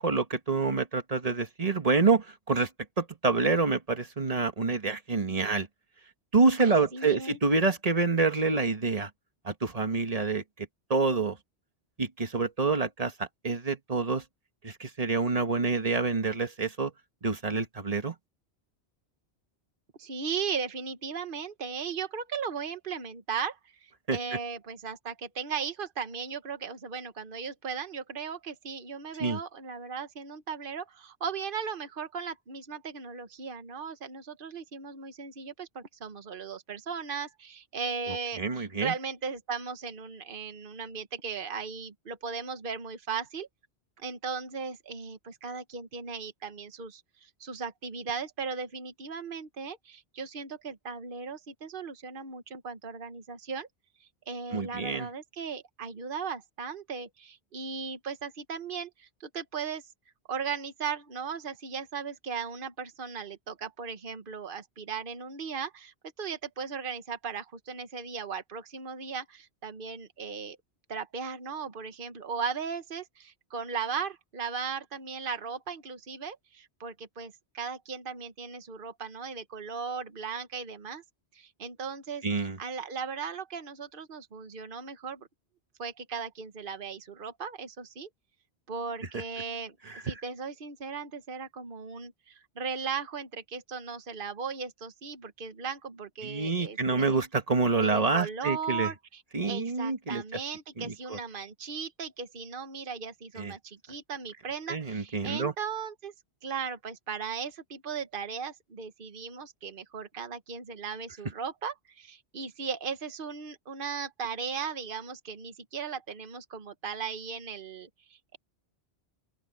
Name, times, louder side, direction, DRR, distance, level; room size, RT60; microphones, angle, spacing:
voice 1, 0.0-2.7 3.0-5.7 6.3-9.1 9.4-10.4 10.9-11.4 12.0-14.2 14.6-16.9 17.2-18.1 24.1-24.2 29.2-29.4 38.4-38.9 54.5-55.1 82.2-82.6 89.1-89.2 96.2-98.9 99.3-100.2 100.8-101.2 103.4-103.5 104.7-105.5, right 4 dB, 35° right, 1.6 m, -27 dB
voice 2, 6.6-7.4 20.0-43.5 44.0-53.7 54.3-59.8 60.3-70.6 70.9-81.0 81.3-85.3 85.8-88.1 88.7-89.7 90.0-97.2 97.7-106.1 106.4-118.4, right 5 dB, 55° right, 1.4 m, -37 dB
open air
omnidirectional pair, 1.1 m